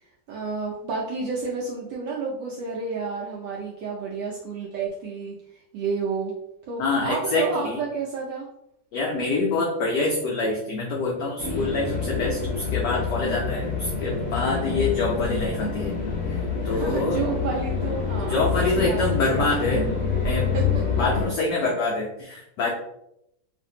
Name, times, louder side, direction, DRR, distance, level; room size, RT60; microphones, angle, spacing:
voice 1, 0.3-5.3 5.7-6.3 6.7-8.5 16.6-19.8 20.5-20.6, right 4 dB, 75° right, -3 dB, 1.0 m, -30 dB
voice 2, 6.8-7.8 8.9-16.0 16.3-16.4 16.6-17.2 18.3-19.8 20.2-20.5 21.0-22.7, left 3 dB, 85° left, -1 dB, 0.9 m, -25 dB
sound 1, 11.4-21.3, left 5 dB, 60° left, 1.0 m, -27 dB
3.2 x 2.5 x 2.7 m, 0.79 s
omnidirectional pair, 2.4 m